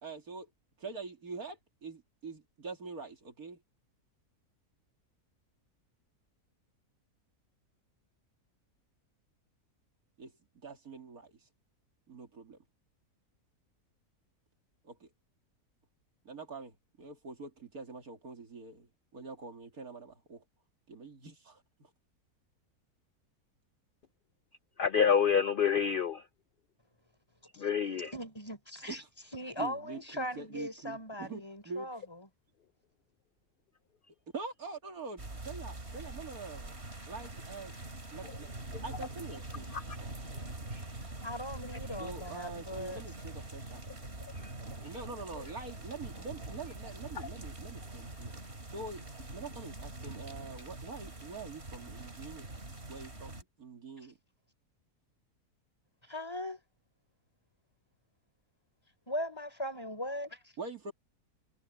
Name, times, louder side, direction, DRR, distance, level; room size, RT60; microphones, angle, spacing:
voice 1, 0.0-0.5 0.8-3.6 10.2-10.3 10.6-11.3 12.1-12.6 14.8-15.1 16.2-20.4 20.9-21.9 28.9-29.0 29.6-32.0 34.3-36.8 37.0-37.8 38.1-38.5 38.8-40.1 42.0-43.8 44.8-52.5 52.9-54.2 60.6-60.9, right 4 dB, 70° right, 3.0 m, -45 dB
voice 2, 24.8-26.2 27.6-28.1 38.7-38.8 39.7-39.8 40.7-40.8 44.4-44.5, left 7 dB, 90° left, 0.4 m, -28 dB
voice 3, 27.9-29.0 29.3-32.3 41.2-43.0 56.0-56.6 59.1-60.5, left 1 dB, 15° left, 4.7 m, -39 dB
sound 1, 35.2-53.4, right 2 dB, 40° right, 3.5 m, -44 dB
omnidirectional pair, 1.6 m